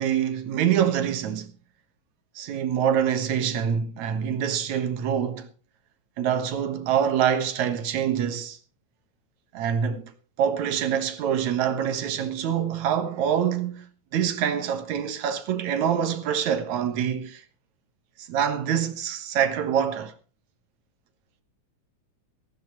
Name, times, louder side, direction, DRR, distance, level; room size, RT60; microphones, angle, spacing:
voice 1, 0.0-1.5 2.4-5.5 6.2-8.6 9.5-10.1 10.4-17.4 18.2-20.1, right 8 dB, 75° right, 2.8 m, -25 dB
18.0 x 14.0 x 3.1 m
omnidirectional pair, 3.3 m